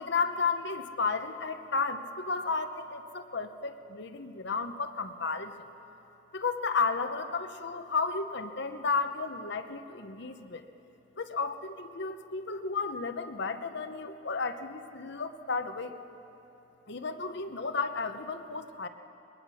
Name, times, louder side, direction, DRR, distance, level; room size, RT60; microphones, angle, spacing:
voice 1, 0.0-5.5 6.3-10.6 11.2-15.9 16.9-18.9, left 4 dB, 60° left, 8 dB, 0.9 m, -33 dB
22.0 x 21.0 x 6.3 m, 2.9 s
head